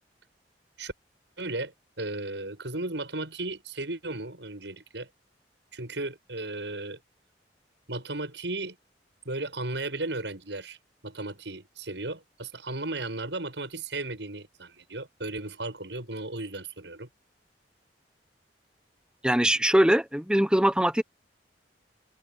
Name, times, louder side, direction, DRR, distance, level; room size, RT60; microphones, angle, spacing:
voice 1, 1.4-5.1 5.7-7.0 7.9-8.8 9.3-10.8 11.0-17.1, right 2 dB, 85° right, 7.3 m, -35 dB
voice 2, 19.2-21.0, right 1 dB, 5° right, 1.0 m, -22 dB
open air
head